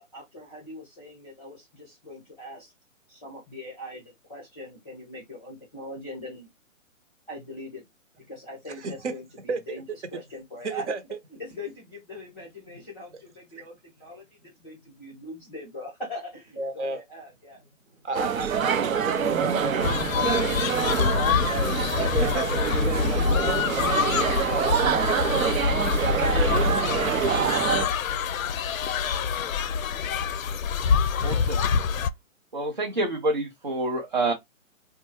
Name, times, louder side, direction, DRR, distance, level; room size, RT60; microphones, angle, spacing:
voice 1, 0.1-2.7 3.1-6.5 7.3-7.8 8.3-9.8 10.1-10.9 11.4-17.6, left 1 dB, 5° left, 0.7 m, -41 dB
voice 2, 8.8-9.1 9.5-9.8 10.6-11.0 13.6-13.7 16.6-17.0 18.0-21.9 22.2-23.9 24.4-25.3 26.1-28.3, right 3 dB, 60° right, 0.9 m, -33 dB
sound 1, 18.1-27.9, right 7 dB, 80° right, 0.7 m, -26 dB
sound 2, 19.8-32.1, left 6 dB, 80° left, 0.5 m, -26 dB
voice 3, 31.2-31.7 32.5-34.3, right 2 dB, 40° right, 0.5 m, -27 dB
4.2 x 2.2 x 2.9 m
hypercardioid pair, 175°, 40 cm